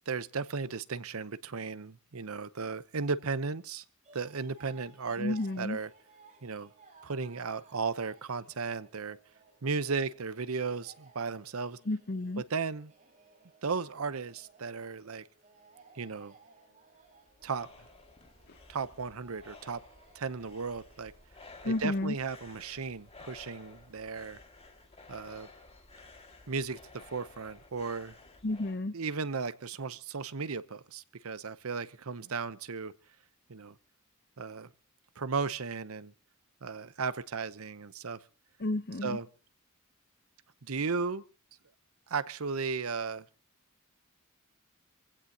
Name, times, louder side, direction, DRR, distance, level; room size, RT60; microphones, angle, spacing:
voice 1, 0.1-3.8 4.1-5.9 6.4-6.7 7.0-9.2 9.6-11.8 12.5-12.9 13.6-15.2 15.9-16.3 17.4-17.7 18.7-19.8 20.1-21.1 21.6-24.4 25.1-25.5 26.5-28.1 28.9-32.9 33.5-33.7 34.4-34.7 35.2-36.1 36.6-38.2 39.0-39.3 40.6-41.2 42.1-43.2, right 4 dB, 80° right, 0.8 m, -35 dB
sound 1, 4.0-21.3, right 4 dB, 35° right, 5.4 m, -61 dB
voice 2, 5.2-5.8 11.9-12.4 21.6-22.1 28.4-28.9 38.6-39.2, left 2 dB, 50° left, 0.8 m, -31 dB
sound 2, 16.9-28.8, left 3 dB, 30° left, 2.1 m, -54 dB
25.5 x 16.0 x 2.9 m
head